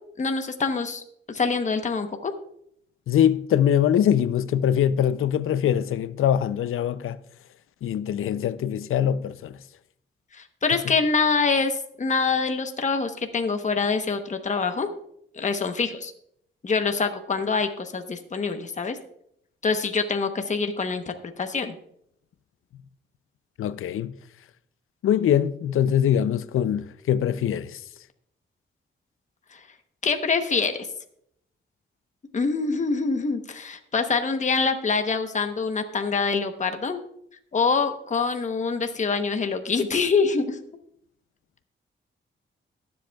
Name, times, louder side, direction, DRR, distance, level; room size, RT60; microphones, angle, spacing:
voice 1, 0.2-1.0 1.3-2.3 10.3-14.9 15.3-16.1 16.6-19.0 19.6-21.7 29.5-29.6 30.0-30.9 32.3-37.0 37.5-40.6, left 4 dB, 35° left, 1.0 m, -25 dB
voice 2, 3.1-7.2 7.8-9.6 23.6-24.1 25.0-27.8, left 9 dB, 90° left, 0.5 m, -23 dB
22.0 x 7.8 x 2.3 m
cardioid pair, 105°, 21 cm